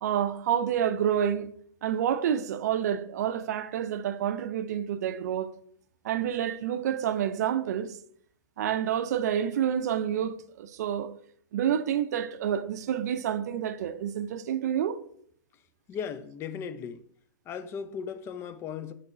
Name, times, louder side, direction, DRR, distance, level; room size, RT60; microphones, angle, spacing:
voice 1, 0.0-1.5 1.8-5.5 6.0-8.0 8.6-11.1 11.5-15.0, right 9 dB, 55° right, 0.5 m, -28 dB
voice 2, 15.9-17.0 17.5-18.9, left 7 dB, 25° left, 0.5 m, -37 dB
6.0 x 3.2 x 5.0 m
figure-of-eight pair, 110°, 10 cm